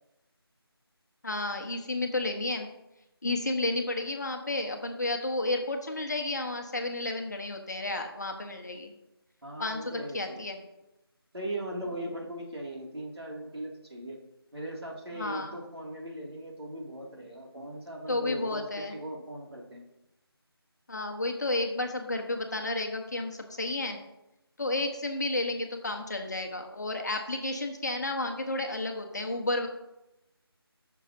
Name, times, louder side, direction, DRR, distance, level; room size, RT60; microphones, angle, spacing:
voice 1, 1.2-2.7 3.2-8.9 9.6-10.6 15.1-15.6 18.1-18.9 20.9-24.0 24.6-29.7, left 2 dB, 45° left, 4 dB, 1.2 m, -32 dB
voice 2, 9.4-10.5 11.3-14.2 14.5-19.8, right 1 dB, 75° right, -2 dB, 2.6 m, -39 dB
14.5 x 6.6 x 2.8 m, 0.93 s
figure-of-eight pair, 165°, 13 cm